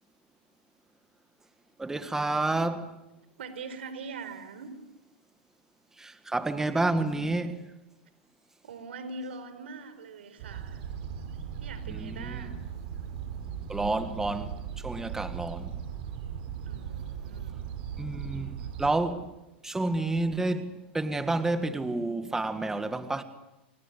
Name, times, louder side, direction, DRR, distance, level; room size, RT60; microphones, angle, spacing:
voice 1, 1.8-2.9 6.0-7.7 11.9-12.5 13.7-15.7 18.0-19.3 19.6-23.2, right 2 dB, 10° right, 1.7 m, -30 dB
voice 2, 3.4-4.7 8.6-10.8 11.6-12.7 16.6-17.6, right 4 dB, 85° right, 4.5 m, -42 dB
sound 1, 10.4-18.9, right 8 dB, 65° right, 5.6 m, -38 dB
29.0 x 24.0 x 8.3 m
hypercardioid pair, 125°, 6 cm